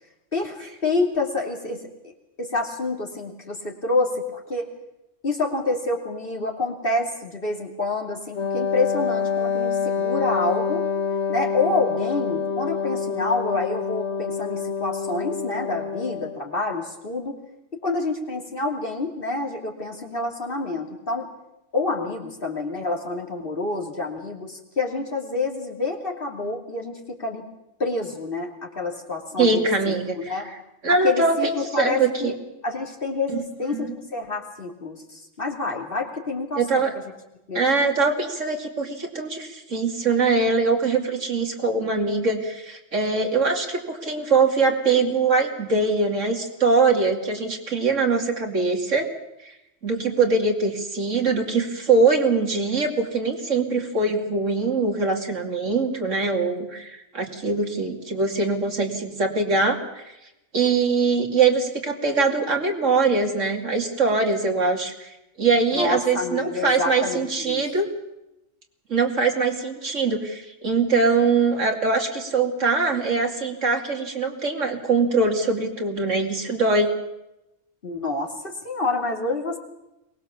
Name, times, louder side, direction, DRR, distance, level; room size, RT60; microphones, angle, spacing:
voice 1, 0.3-2.1 2.4-4.7 5.2-10.9 11.3-17.4 17.7-21.3 21.7-27.4 27.8-30.5 31.0-32.4 32.6-36.8 37.5-37.6 65.7-67.6 77.8-79.6, left 3 dB, 50° left, 1 dB, 3.0 m, -28 dB
Wind instrument woodwind instrument, 8.3-16.4, left 6 dB, 65° left, 1.5 m, -27 dB
voice 2, 29.4-30.3 30.8-32.3 33.3-33.4 33.7-34.0 36.6-36.9 37.5-49.1 49.8-60.1 60.5-65.1 65.4-67.9 68.9-76.9, right 4 dB, 90° right, 2 dB, 3.0 m, -22 dB
23.0 x 20.0 x 7.1 m, 0.91 s
omnidirectional pair, 1.3 m